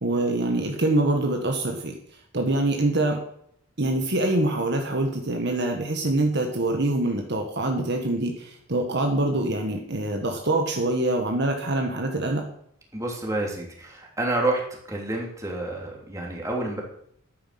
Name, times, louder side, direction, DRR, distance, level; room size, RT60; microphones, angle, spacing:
voice 1, 0.0-2.0 2.3-3.2 3.8-12.4, right 2 dB, 55° right, 3 dB, 1.7 m, -25 dB
voice 2, 12.9-14.6 14.9-16.8, right 2 dB, 15° right, -1 dB, 3.2 m, -28 dB
11.5 x 9.4 x 6.0 m, 0.70 s
head